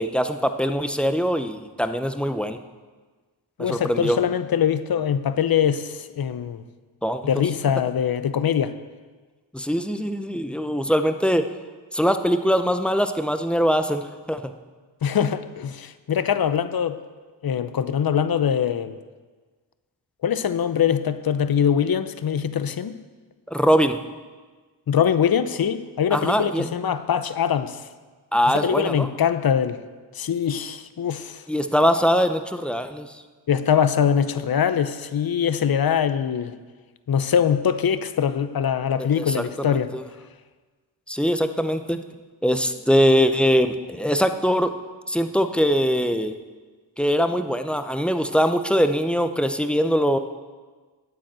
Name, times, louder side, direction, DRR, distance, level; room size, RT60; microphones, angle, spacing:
voice 1, 0.0-2.6 3.6-4.2 7.0-7.2 9.5-11.4 11.9-14.5 23.5-24.0 26.1-26.9 28.3-29.1 31.5-33.2 39.2-40.0 41.1-42.0 42.4-44.7 45.1-46.4 47.0-50.2, equal, ahead, 8 dB, 0.7 m, -22 dB
voice 2, 3.6-6.6 7.2-8.7 15.0-17.0 17.4-19.0 20.2-22.9 24.9-27.8 28.5-29.8 30.1-31.4 33.5-36.5 37.1-39.9, left 8 dB, 50° left, 12 dB, 0.7 m, -23 dB
9.3 x 8.8 x 7.5 m, 1.4 s
cardioid pair, 70°, 45 cm